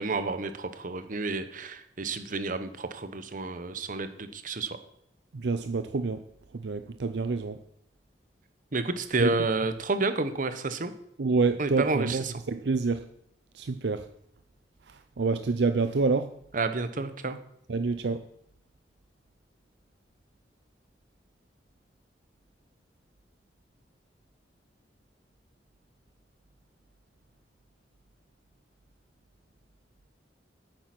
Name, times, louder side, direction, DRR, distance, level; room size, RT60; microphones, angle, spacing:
voice 1, 0.0-4.8 8.7-10.9 11.6-12.3 16.5-17.4, right 3 dB, 50° right, 10 dB, 1.0 m, -30 dB
voice 2, 5.3-6.2 6.5-7.6 9.2-9.3 11.2-13.1 13.5-14.1 14.9-16.3 17.7-18.3, right 4 dB, 70° right, 10 dB, 0.5 m, -27 dB
9.5 x 9.0 x 6.0 m, 0.74 s
head